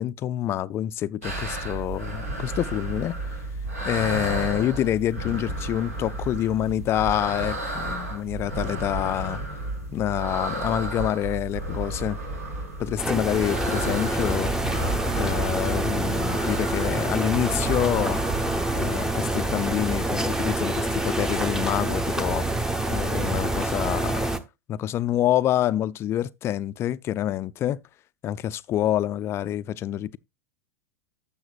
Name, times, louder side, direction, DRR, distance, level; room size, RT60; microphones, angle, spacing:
voice 1, 0.0-3.2 3.8-9.4 9.9-12.2 12.8-14.5 15.2-18.2 18.7-22.4 22.9-24.3 24.7-27.8 28.2-30.2, left 12 dB, 30° left, 0.4 m, -27 dB
sound 1, 1.2-18.9, right 1 dB, 70° right, 4.5 m, -32 dB
sound 2, 13.0-24.4, right 2 dB, 5° right, 0.9 m, -26 dB
12.0 x 7.1 x 2.4 m
figure-of-eight pair, 90°, 8 cm